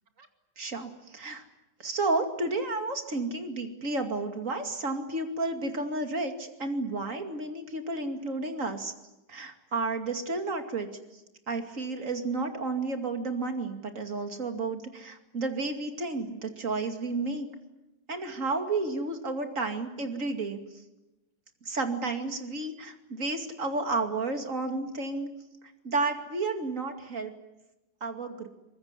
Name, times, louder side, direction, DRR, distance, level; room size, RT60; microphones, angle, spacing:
voice 1, 0.6-1.4 1.8-8.9 9.3-10.9 11.5-17.5 18.1-20.6 21.6-25.3 25.8-27.3 28.0-28.5, right 3 dB, 45° right, 6 dB, 2.8 m, -31 dB
24.5 x 21.0 x 9.8 m, 0.97 s
omnidirectional pair, 1.8 m